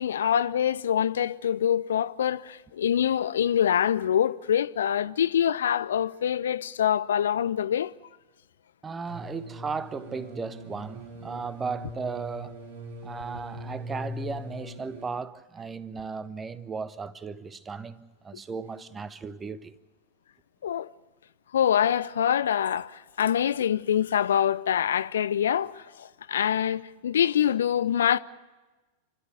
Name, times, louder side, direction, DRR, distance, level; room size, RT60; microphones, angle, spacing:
voice 1, 0.0-7.9 20.6-20.9 21.5-28.2, left 9 dB, 65° left, 0.6 m, -25 dB
voice 2, 8.8-12.6 13.0-19.8, right 5 dB, 15° right, 1.0 m, -36 dB
sound 1, 9.1-15.1, left 1 dB, 65° right, 3.7 m, -41 dB
29.5 x 13.0 x 8.5 m
figure-of-eight pair, 90°, 0 cm